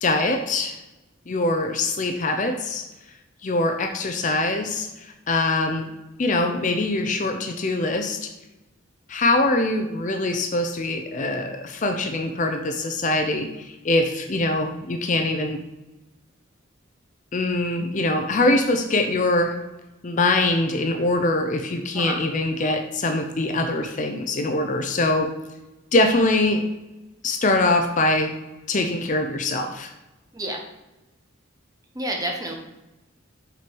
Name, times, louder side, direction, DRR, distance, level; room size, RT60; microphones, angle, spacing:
voice 1, 0.0-0.8 1.3-2.8 3.4-4.9 5.3-5.9 6.2-8.3 9.1-15.6 17.3-19.5 20.0-25.3 25.9-26.6 27.2-28.3 28.7-29.9, left 2 dB, 40° left, 5 dB, 0.5 m, -23 dB
voice 2, 31.9-32.5, right 1 dB, 20° right, 1 dB, 0.9 m, -29 dB
5.9 x 4.5 x 5.3 m, 1.0 s
head